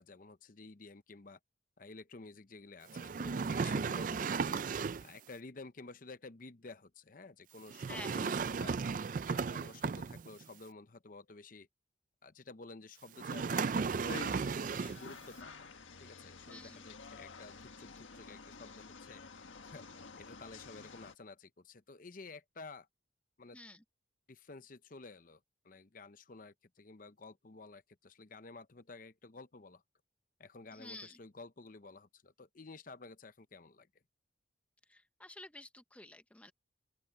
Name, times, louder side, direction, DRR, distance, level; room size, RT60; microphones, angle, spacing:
voice 1, 0.0-1.4 1.8-8.8 9.3-11.7 12.2-15.7 16.0-19.9 20.2-22.9 23.4-23.6 24.3-29.8 30.4-33.9, left 3 dB, 45° left, 0.7 m, -52 dB
sound 1, 2.9-5.2 7.7-10.4 13.2-15.1, right 5 dB, 45° right, 0.4 m, -35 dB
voice 2, 7.9-8.3 16.5-16.9 23.5-23.8 30.7-31.2 34.9-36.5, left 2 dB, 5° left, 0.6 m, -50 dB
sound 2, 14.1-21.1, left 4 dB, 90° left, 1.6 m, -50 dB
open air
head